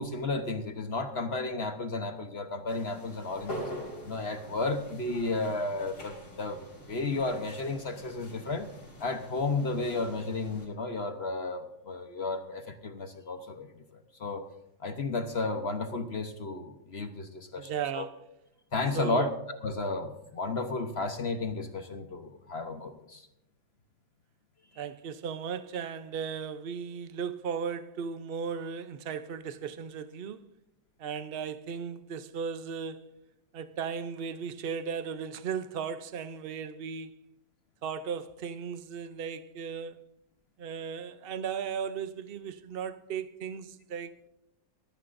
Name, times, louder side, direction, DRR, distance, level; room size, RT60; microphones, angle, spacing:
voice 1, 0.0-3.7 4.0-8.7 9.0-14.5 14.8-18.0 18.7-23.3, left 3 dB, 45° left, 1.0 m, -33 dB
sound 1, 2.7-10.7, equal, 90° left, 5.4 m, -44 dB
voice 2, 17.6-18.2 18.9-19.3 24.8-30.5 31.0-33.2 33.5-37.2 37.8-40.0 40.6-44.3, right 7 dB, 65° right, 0.5 m, -36 dB
19.5 x 13.5 x 2.6 m
omnidirectional pair, 2.0 m